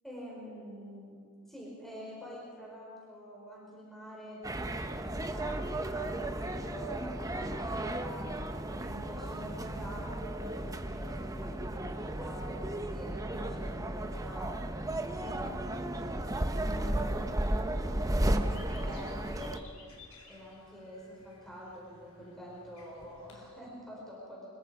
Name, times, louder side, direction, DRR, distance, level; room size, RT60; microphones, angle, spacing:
voice 1, 0.0-1.2 1.5-8.4 8.8-14.5 15.2-19.5 20.3-24.5, equal, ahead, -5 dB, 4.7 m, -46 dB
sound 1, 4.4-19.6, right 1 dB, 15° right, 0.9 m, -34 dB
sound 2, 18.4-23.5, left 3 dB, 70° left, 4.2 m, -56 dB
25.0 x 22.0 x 4.9 m, 2.2 s
head